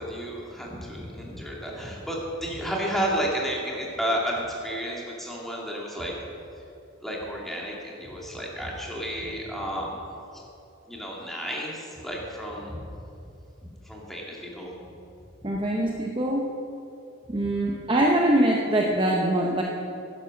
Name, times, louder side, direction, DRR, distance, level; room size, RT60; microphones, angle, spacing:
voice 1, 0.0-6.1 7.0-10.0 10.3-10.4 10.9-12.8 13.9-14.8, equal, ahead, -3 dB, 2.3 m, -32 dB
voice 2, 15.4-16.5 17.3-19.6, right 1 dB, 25° right, -1 dB, 0.8 m, -23 dB
11.5 x 11.0 x 6.5 m, 2.8 s
head